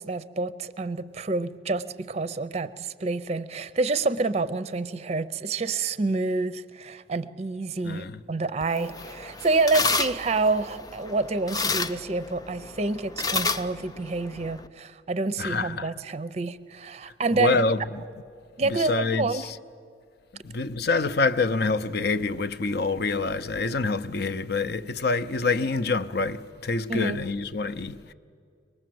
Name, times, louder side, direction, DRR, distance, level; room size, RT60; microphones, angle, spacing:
voice 1, 0.0-17.7 18.6-19.5 26.9-27.2, right 3 dB, 35° right, 0.5 m, -28 dB
voice 2, 7.8-8.2 15.4-15.9 17.4-18.0 18.7-19.4 20.4-28.1, left 3 dB, 55° left, 0.7 m, -26 dB
sound 1, 8.6-14.7, left 4 dB, 20° left, 0.5 m, -31 dB
24.0 x 20.0 x 7.7 m
head